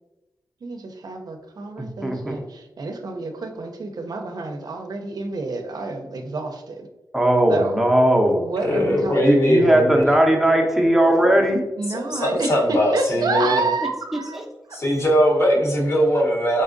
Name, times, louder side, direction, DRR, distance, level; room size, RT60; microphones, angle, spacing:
voice 1, 0.6-6.9 7.5-7.8 8.3-9.8 11.8-14.4 14.7-14.8, right 3 dB, 65° right, 4 dB, 0.5 m, -29 dB
voice 2, 1.8-2.4 7.1-8.5 9.2-11.6 14.3-14.4, right 1 dB, 5° right, 0 dB, 0.7 m, -18 dB
voice 3, 8.6-10.0 11.9-13.6 14.7-16.6, equal, 40° left, -1 dB, 0.9 m, -20 dB
4.1 x 3.6 x 2.5 m, 1.1 s
wide cardioid pair, 100°, 7 cm